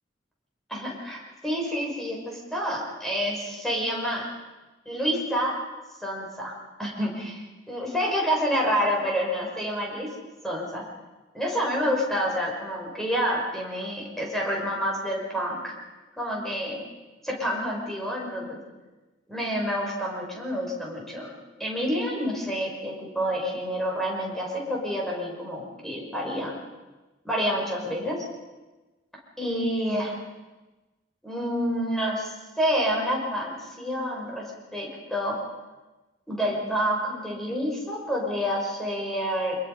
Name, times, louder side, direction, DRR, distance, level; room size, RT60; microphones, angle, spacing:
voice 1, 0.7-4.2 4.9-5.6 6.0-6.5 6.8-7.4 7.7-10.1 10.4-10.8 11.3-15.7 16.2-16.8 17.2-18.6 19.3-21.3 21.6-26.5 27.2-28.2 29.4-30.2 31.2-34.4 34.7-35.4 36.3-39.6, equal, ahead, -2 dB, 6.1 m, -28 dB
25.0 x 22.0 x 5.7 m, 1.2 s
head